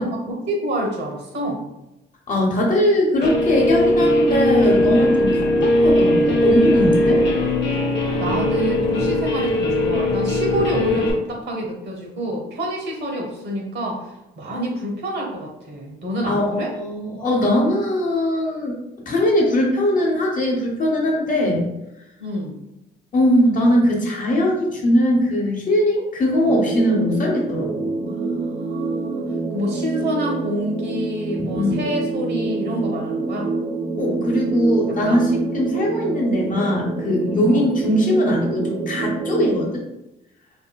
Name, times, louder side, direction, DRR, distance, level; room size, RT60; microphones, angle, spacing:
voice 1, 0.0-1.6 8.2-16.7 22.2-22.6 28.0-33.5 35.0-35.2 37.5-37.7, equal, 60° right, 1 dB, 0.9 m, -27 dB
voice 2, 2.3-7.2 16.3-18.7 19.1-21.6 23.1-27.9 31.5-31.7 34.0-39.8, left 1 dB, 40° left, -1 dB, 0.9 m, -20 dB
Guitar, 3.2-11.1, left 1 dB, 60° left, 0.7 m, -19 dB
sound 1, 26.5-39.5, right 3 dB, 20° right, 0.5 m, -27 dB
3.6 x 2.2 x 2.2 m, 0.91 s
cardioid pair, 90°, 20 cm